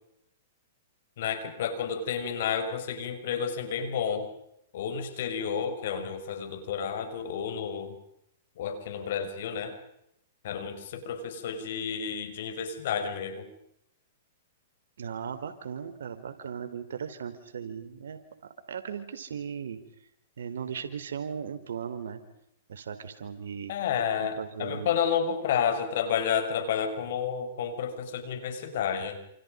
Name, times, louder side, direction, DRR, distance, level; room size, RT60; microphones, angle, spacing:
voice 1, 1.2-4.3 4.7-8.0 8.6-9.8 10.4-13.5 23.7-29.2, left 7 dB, 65° left, 8 dB, 6.0 m, -31 dB
voice 2, 15.0-18.2 18.7-19.8 20.4-22.2 22.7-23.7 24.2-25.0, right 7 dB, 80° right, 9 dB, 4.2 m, -37 dB
29.5 x 28.0 x 5.3 m, 0.77 s
hypercardioid pair, 130°, 0 cm